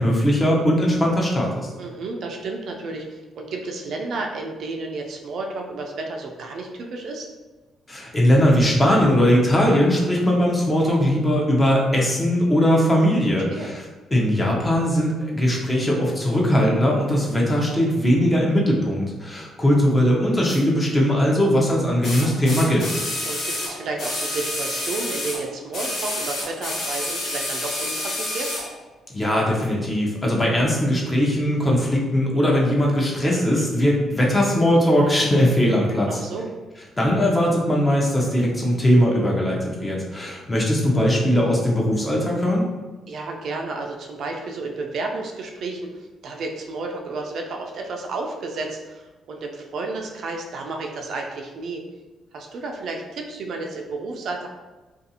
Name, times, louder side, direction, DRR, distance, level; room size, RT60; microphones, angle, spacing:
voice 1, 0.0-1.7 7.9-13.8 14.1-23.0 29.1-36.2 37.0-42.6, equal, 20° left, -2 dB, 0.6 m, -20 dB
voice 2, 1.8-7.3 13.5-13.7 23.2-28.5 36.1-36.5 43.1-51.8 52.3-54.5, right 3 dB, 65° right, 2 dB, 0.4 m, -32 dB
sound 1, 20.4-20.6 22.0-25.4 25.7-28.7 29.6-29.7, left 1 dB, 70° left, 0.8 m, -29 dB
2.5 x 2.3 x 2.7 m, 1.2 s
cardioid pair, 90°, 0 cm